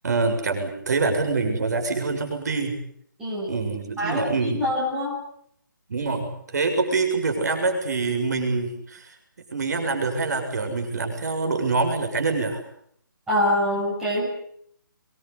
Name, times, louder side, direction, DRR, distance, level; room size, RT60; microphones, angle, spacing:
voice 1, 0.0-2.8 3.5-4.6 5.9-9.2 9.5-12.6, right 3 dB, 50° right, 5 dB, 7.1 m, -25 dB
voice 2, 3.2-3.5 4.0-5.2 13.3-14.3, left 1 dB, 5° right, -7 dB, 6.2 m, -25 dB
24.5 x 22.0 x 8.4 m, 0.66 s
hypercardioid pair, 170°, 11 cm